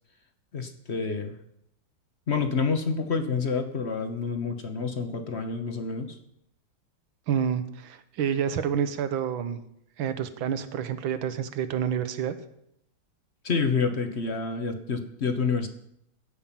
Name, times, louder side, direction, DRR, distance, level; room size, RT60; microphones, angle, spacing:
voice 1, 0.5-1.4 2.3-6.2 13.4-15.7, left 5 dB, 45° left, 8 dB, 0.9 m, -28 dB
voice 2, 7.3-9.6 10.0-12.3, right 8 dB, 75° right, 11 dB, 1.8 m, -28 dB
16.0 x 5.6 x 9.0 m, 0.75 s
omnidirectional pair, 2.3 m